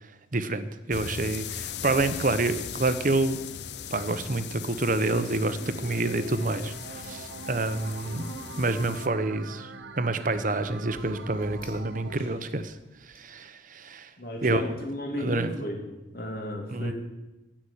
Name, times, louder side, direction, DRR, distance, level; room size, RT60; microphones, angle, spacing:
voice 1, 0.3-3.4 3.9-8.2 8.6-12.7 13.1-14.1 14.4-14.7 15.2-15.5 16.7-16.9, right 2 dB, 50° right, 11 dB, 1.0 m, -28 dB
sound 1, 0.9-9.1, left 8 dB, 75° left, 0.7 m, -39 dB
sound 2, 5.0-12.2, right 4 dB, 85° right, 0.8 m, -43 dB
sound 3, 8.1-13.2, equal, 25° left, 4.4 m, -49 dB
voice 2, 14.2-15.8 16.1-16.9, left 1 dB, 60° left, 2 dB, 2.9 m, -34 dB
15.0 x 6.2 x 9.9 m, 1.0 s
head